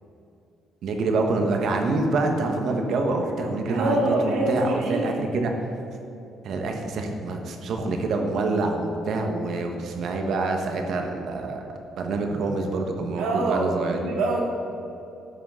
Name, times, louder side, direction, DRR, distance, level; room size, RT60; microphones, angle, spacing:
voice 1, 0.8-5.5 6.4-11.6 12.0-14.2, right 3 dB, 60° right, 4 dB, 1.2 m, -26 dB
voice 2, 3.7-5.2 13.2-14.4, right 2 dB, 85° right, -2 dB, 2.1 m, -25 dB
10.0 x 5.9 x 5.6 m, 2.8 s
cardioid pair, 145°, 0 cm